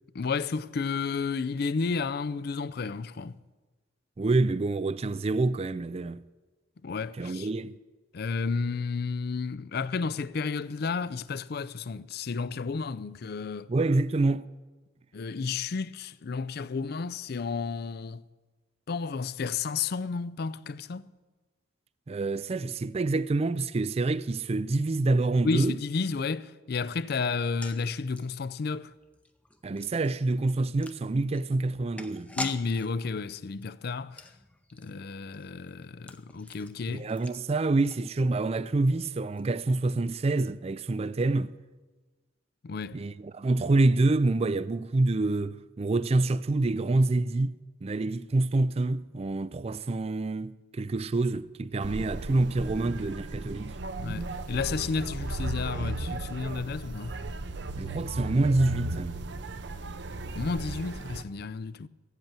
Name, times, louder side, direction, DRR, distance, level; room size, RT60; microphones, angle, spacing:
voice 1, 0.1-3.4 6.8-7.5 8.1-13.7 15.1-18.2 18.9-21.1 25.4-28.9 32.4-34.3 34.7-37.1 42.6-43.0 54.0-57.1 60.3-61.9, left 4 dB, 55° left, 0.4 m, -32 dB
voice 2, 4.2-6.2 7.2-7.8 13.7-14.5 22.1-25.7 29.6-32.3 36.9-41.5 42.9-47.6 47.8-53.8 57.8-59.2, right 2 dB, 30° right, 0.4 m, -27 dB
sound 1, 27.3-38.6 38.8-38.9 39.2-39.4, left 2 dB, 5° left, 0.6 m, -45 dB
sound 2, 51.8-61.2, right 2 dB, 60° right, 0.7 m, -36 dB
15.5 x 8.2 x 8.9 m
head